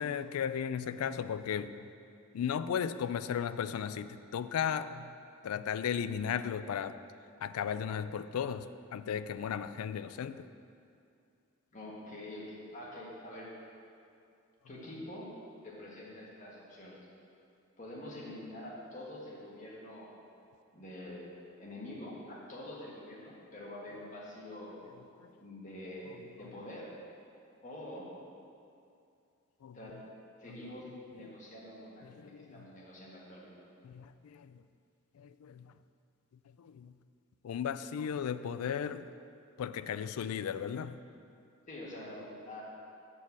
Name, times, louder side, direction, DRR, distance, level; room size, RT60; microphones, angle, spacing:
voice 1, 0.0-1.9 2.3-5.1 5.4-7.0 7.4-10.5 25.2-25.3 26.1-26.2 29.6-29.8 30.5-30.6 31.2-31.3 32.0-32.6 33.8-34.6 35.2-35.7 36.6-36.9 37.4-39.1 39.6-41.0, left 8 dB, 85° left, 13 dB, 0.3 m, -36 dB
voice 2, 11.7-13.5 14.6-15.3 15.6-17.0 17.8-20.1 20.7-21.3 21.6-24.8 25.4-26.9 27.6-28.0 29.7-30.0 30.4-33.5 41.7-42.6, left 1 dB, 35° left, -5 dB, 1.6 m, -46 dB
7.8 x 4.5 x 7.1 m, 2.5 s
head